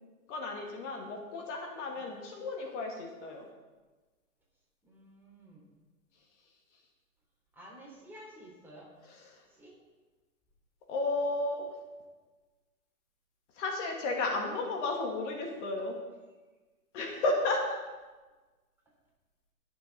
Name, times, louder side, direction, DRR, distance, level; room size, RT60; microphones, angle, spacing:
voice 1, 0.3-3.5 10.9-11.6 13.6-16.0 16.9-17.6, left 2 dB, 50° left, 1 dB, 2.1 m, -33 dB
voice 2, 4.8-5.7 7.5-8.9 9.4-9.7, equal, 5° right, -4 dB, 3.3 m, -52 dB
20.5 x 6.9 x 4.1 m, 1.3 s
hypercardioid pair, 135°, 44 cm